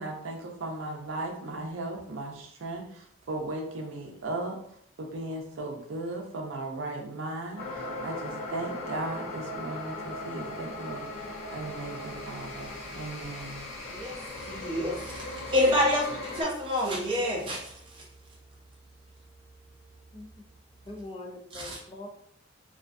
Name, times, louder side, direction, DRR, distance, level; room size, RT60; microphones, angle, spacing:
voice 1, 0.0-4.6 5.0-11.1 11.5-13.7, right 2 dB, 80° right, 1 dB, 0.5 m, -37 dB
sound 1, 7.6-16.4, left 2 dB, 80° left, 0.8 m, -38 dB
voice 2, 13.9-18.0 21.5-21.8, left 1 dB, 25° right, -3 dB, 0.6 m, -28 dB
voice 3, 20.1-20.4 20.9-22.1, left 2 dB, 25° left, 0 dB, 0.3 m, -42 dB
2.4 x 2.3 x 2.4 m, 0.69 s
head